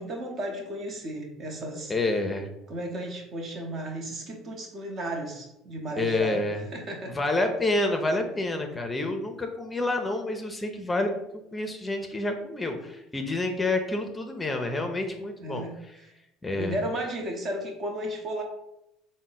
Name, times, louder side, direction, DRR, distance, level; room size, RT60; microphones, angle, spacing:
voice 1, 0.0-1.9 2.7-6.4 6.7-7.2 15.4-16.1 16.6-18.4, right 1 dB, 45° right, 2 dB, 0.9 m, -34 dB
voice 2, 1.9-2.5 6.0-6.6 7.1-11.1 11.5-15.7 16.4-16.7, left 2 dB, 20° left, 4 dB, 0.6 m, -28 dB
3.6 x 2.1 x 4.0 m, 0.85 s
hypercardioid pair, 80°, 0 cm